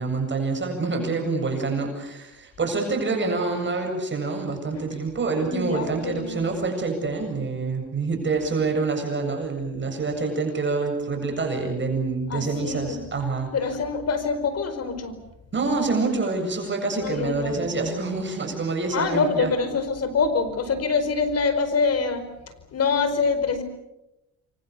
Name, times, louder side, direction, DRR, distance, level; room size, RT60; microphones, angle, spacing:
voice 1, 0.0-13.5 15.5-19.5, right 3 dB, 40° right, 3 dB, 7.6 m, -26 dB
voice 2, 5.4-6.4 12.3-13.0 13.5-15.1 17.0-17.8 18.9-22.3 22.7-23.6, left 4 dB, 55° left, 10 dB, 4.9 m, -25 dB
28.5 x 25.0 x 7.0 m, 0.91 s
cardioid pair, 90°, 30 cm